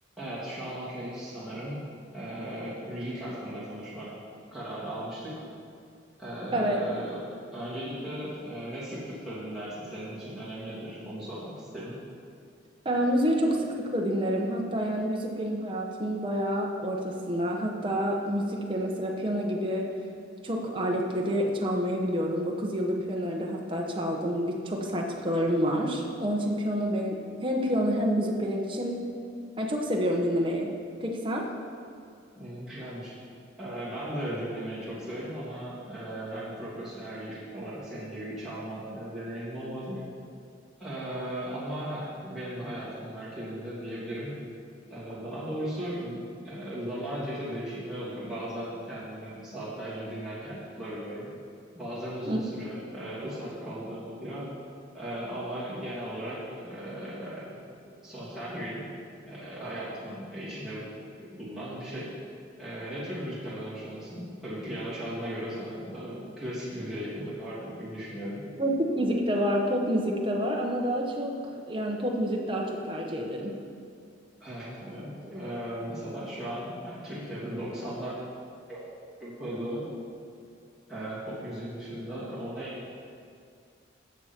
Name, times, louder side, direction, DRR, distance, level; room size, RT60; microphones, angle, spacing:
voice 1, 0.2-1.8 2.1-4.1 4.5-5.3 6.2-7.2 7.5-11.9 32.4-33.1 33.6-40.0 40.8-44.3 44.9-51.3 51.7-54.4 54.9-58.8 59.3-60.9 61.2-62.1 62.6-68.4 74.4-78.2 78.7-78.8 79.2-79.8 80.9-82.8, right 1 dB, ahead, -11 dB, 2.8 m, -37 dB
voice 2, 6.5-6.8 12.8-19.9 20.4-29.1 29.6-30.7 31.0-31.6 52.3-52.4 68.6-73.5, equal, 25° right, 0 dB, 1.1 m, -28 dB
14.0 x 7.4 x 4.5 m, 2.3 s
head